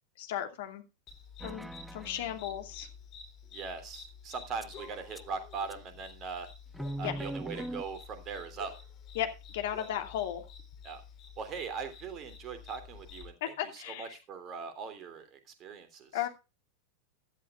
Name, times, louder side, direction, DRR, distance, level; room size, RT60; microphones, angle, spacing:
voice 1, 0.2-0.8 1.4-2.9 7.0-7.1 9.1-10.5 13.4-14.2 16.1-16.3, left 11 dB, 55° left, 6 dB, 2.8 m, -35 dB
sound 1, 1.1-13.3, left 6 dB, 35° left, 3.9 m, -50 dB
sound 2, 1.4-2.3 4.6-4.7 5.1-5.2 5.7-5.8 6.7-7.8, right 1 dB, 5° right, 0.7 m, -39 dB
voice 2, 3.5-6.5 7.0-8.7 10.8-11.0 11.4-13.4 13.7-16.2, right 5 dB, 30° right, 9 dB, 3.1 m, -40 dB
16.0 x 12.5 x 2.4 m, 0.28 s
figure-of-eight pair, 90°, 0 cm